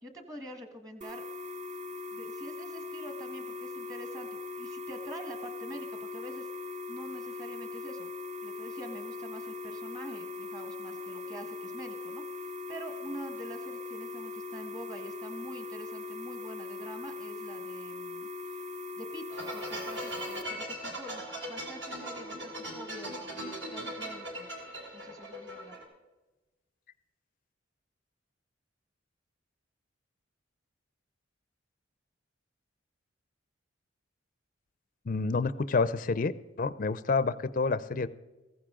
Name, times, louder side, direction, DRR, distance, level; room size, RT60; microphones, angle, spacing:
voice 1, 0.0-1.2 2.1-6.5 6.9-8.1 8.4-18.3 19.0-24.5 24.9-25.7, equal, 20° right, 6 dB, 1.4 m, -46 dB
sound 1, 1.0-20.4, left 3 dB, 35° right, 0.9 m, -40 dB
sound 2, 19.3-25.8, equal, 60° right, 3.4 m, -39 dB
voice 2, 35.1-36.3 36.6-38.1, left 4 dB, 40° left, 15 dB, 0.5 m, -28 dB
15.5 x 15.0 x 3.7 m, 1.1 s
head